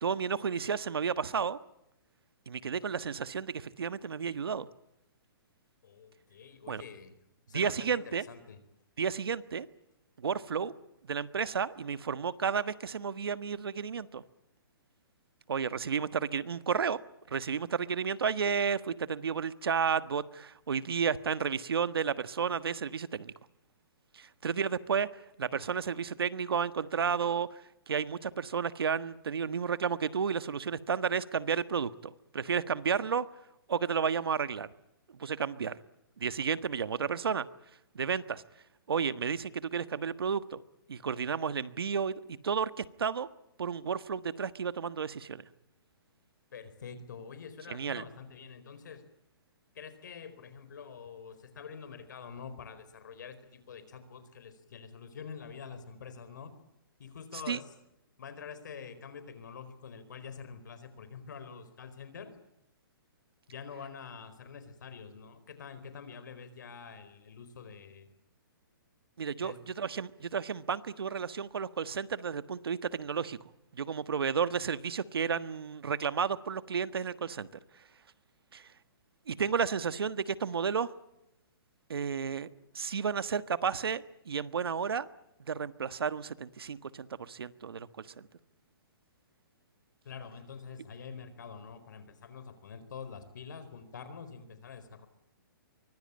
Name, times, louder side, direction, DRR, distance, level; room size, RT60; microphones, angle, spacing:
voice 1, 0.0-1.6 2.5-4.7 6.7-6.8 7.5-8.2 9.0-9.7 10.2-10.7 11.1-14.2 15.5-17.0 17.3-23.3 24.1-25.1 25.4-33.3 33.7-34.7 35.1-35.8 36.2-37.5 37.9-38.4 38.9-40.6 40.9-43.3 43.6-45.5 47.7-48.0 57.5-57.6 69.2-73.4 73.7-77.5 78.5-78.7 79.3-80.9 81.9-85.1 85.5-88.3, right 6 dB, 85° right, 13 dB, 1.4 m, -32 dB
voice 2, 5.8-7.1 7.5-8.6 46.5-49.0 49.7-56.5 57.0-57.7 58.2-62.4 63.5-68.1 69.4-69.6 90.0-95.1, left 6 dB, 55° left, 12 dB, 4.4 m, -46 dB
24.5 x 21.5 x 8.8 m, 0.85 s
hypercardioid pair, 175°, 12 cm